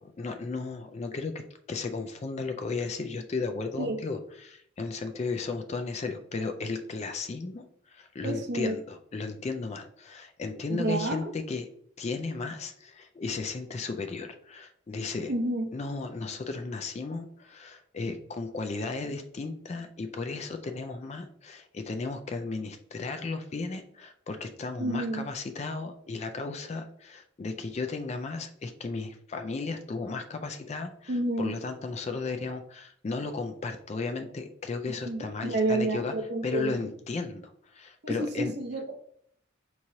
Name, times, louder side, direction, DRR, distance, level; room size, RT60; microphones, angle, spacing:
voice 1, 0.0-1.4 1.7-11.7 12.0-15.3 15.7-36.1 36.4-38.5, left 3 dB, 30° left, 7 dB, 0.3 m, -35 dB
voice 2, 8.2-8.7 10.7-11.3 15.3-15.7 24.8-25.2 31.1-31.6 34.8-36.7 38.0-38.9, right 2 dB, 55° right, 5 dB, 0.7 m, -30 dB
4.9 x 3.0 x 2.7 m, 0.66 s
head